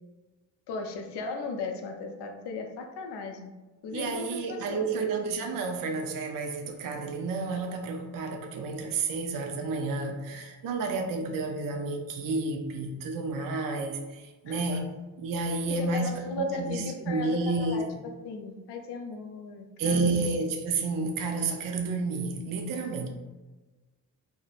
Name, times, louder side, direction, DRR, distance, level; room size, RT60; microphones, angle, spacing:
voice 1, 0.7-3.5 3.8-5.0 14.5-14.6 15.5-20.2, left 4 dB, 75° left, 4 dB, 0.5 m, -37 dB
voice 2, 3.9-14.9 15.2-17.8 19.8-23.1, right 3 dB, 55° right, 3 dB, 0.5 m, -30 dB
2.6 x 2.0 x 2.3 m, 1.2 s
supercardioid pair, 45°, 42 cm